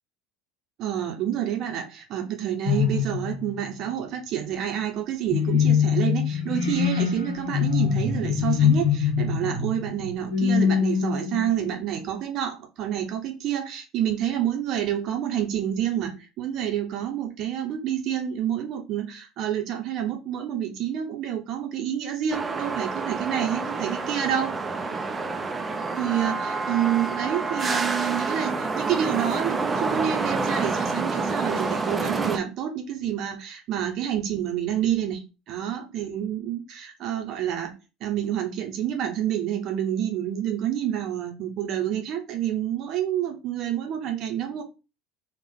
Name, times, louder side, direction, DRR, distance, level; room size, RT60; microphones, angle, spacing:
voice 1, 0.8-24.6 26.0-35.2 35.5-37.7 38.0-44.6, right 10 dB, 50° right, 3 dB, 0.9 m, -28 dB
sound 1, 2.6-3.7 5.3-11.8, left 7 dB, 65° left, 1.1 m, -23 dB
sound 2, 22.3-32.4, right 3 dB, 20° right, 0.6 m, -28 dB
3.4 x 2.4 x 3.7 m, 0.30 s
hypercardioid pair, 70°, 0 cm